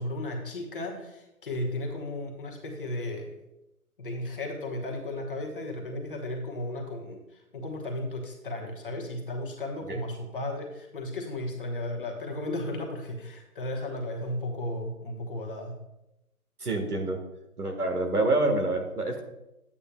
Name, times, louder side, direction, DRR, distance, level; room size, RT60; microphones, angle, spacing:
voice 1, 0.0-3.4 4.0-15.7, left 1 dB, 35° left, 1 dB, 1.2 m, -35 dB
voice 2, 16.6-17.2 17.6-19.2, right 2 dB, 90° right, 4 dB, 1.7 m, -27 dB
9.7 x 8.5 x 2.3 m, 0.89 s
figure-of-eight pair, 150°, 44 cm